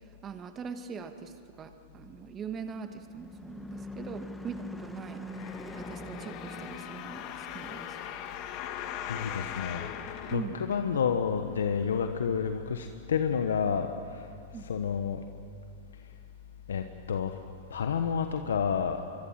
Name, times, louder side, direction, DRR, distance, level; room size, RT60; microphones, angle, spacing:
voice 1, 0.2-1.3 1.6-8.0 10.3-10.6 10.9-11.0 14.5-14.6, right 6 dB, 25° right, 8 dB, 1.8 m, -42 dB
Car passing by / Truck / Engine, 2.2-10.9, left 1 dB, 5° left, 1.7 m, -45 dB
sound 1, 5.3-11.2 11.8-11.9, left 10 dB, 45° left, 1.8 m, -40 dB
voice 2, 9.1-15.2 16.7-17.3 17.7-19.0, left 7 dB, 80° left, 7 dB, 1.2 m, -30 dB
24.0 x 23.5 x 7.6 m, 2.3 s
hypercardioid pair, 115°, 0 cm